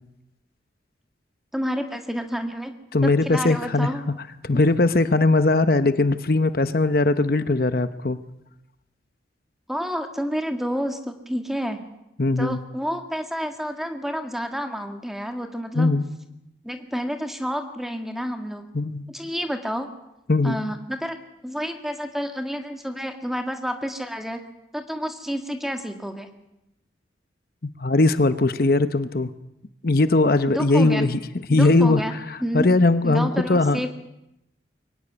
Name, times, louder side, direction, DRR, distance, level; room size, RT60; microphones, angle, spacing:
voice 1, 1.5-2.7 3.0-4.0 4.5-4.6 9.7-11.8 12.4-15.9 16.6-18.7 19.1-19.9 20.4-21.2 21.4-24.4 24.7-26.3 30.5-31.1 31.5-32.1 32.4-32.7 33.0-33.9, equal, ahead, 5 dB, 1.9 m, -29 dB
voice 2, 2.9-3.9 4.4-8.2 12.2-12.6 15.7-16.0 18.7-19.0 20.3-20.6 27.8-29.3 29.8-31.2 31.5-32.0 32.5-33.8, left 2 dB, 50° left, 11 dB, 0.8 m, -19 dB
23.5 x 17.5 x 9.8 m, 0.89 s
head